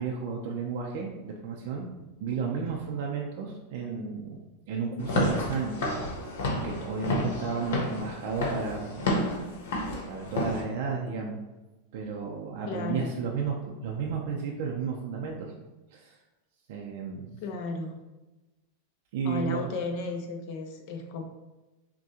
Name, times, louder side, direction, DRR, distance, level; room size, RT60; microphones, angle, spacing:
voice 1, 0.0-1.9 2.2-4.4 4.7-5.8 6.6-9.4 9.9-11.4 11.9-15.5 15.9-16.2 16.7-17.4 19.1-19.7, right 5 dB, 60° right, -1 dB, 0.5 m, -33 dB
Walk footsteps / Siren, 5.0-10.6, left 1 dB, 80° left, 1.1 m, -30 dB
voice 2, 12.7-13.1 17.4-18.0 19.2-21.2, left 3 dB, 50° left, 4 dB, 0.7 m, -34 dB
6.1 x 2.2 x 2.8 m, 1.1 s
supercardioid pair, 145°, 0 cm